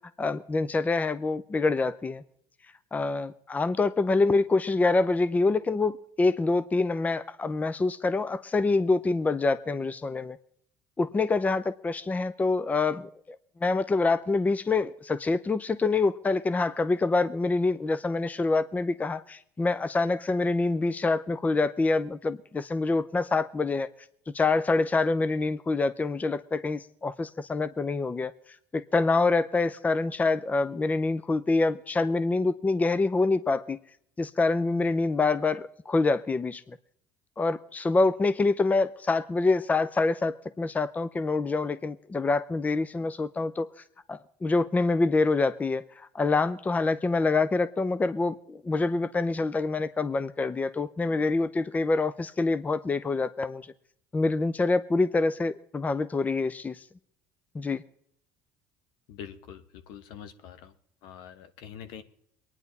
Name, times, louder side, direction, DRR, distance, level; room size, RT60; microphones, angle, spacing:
voice 1, 0.2-2.2 2.9-10.4 11.0-23.9 24.3-28.3 28.7-33.8 34.2-36.8 37.4-43.7 44.1-53.7 54.1-56.8 57.5-57.8, left 3 dB, 20° left, 15 dB, 0.6 m, -26 dB
voice 2, 59.1-60.7 61.0-62.0, left 8 dB, 75° left, 10 dB, 1.3 m, -44 dB
22.5 x 9.9 x 4.1 m, 0.67 s
supercardioid pair, 85°, 8 cm